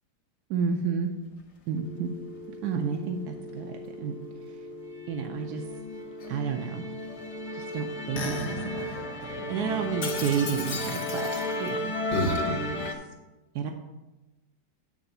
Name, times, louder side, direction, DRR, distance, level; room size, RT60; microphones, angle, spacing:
voice 1, 0.5-1.1 1.7-2.1 2.6-4.2 5.1-5.6 6.3-6.8 7.5-8.9 9.2-11.3 11.6-11.9 12.4-12.9 13.5-13.7, right 6 dB, 75° right, 3 dB, 1.1 m, -31 dB
Musical instrument, 1.8-13.0, left 2 dB, 70° left, 1.5 m, -33 dB
8.8 x 3.4 x 6.7 m, 1.1 s
omnidirectional pair, 1.8 m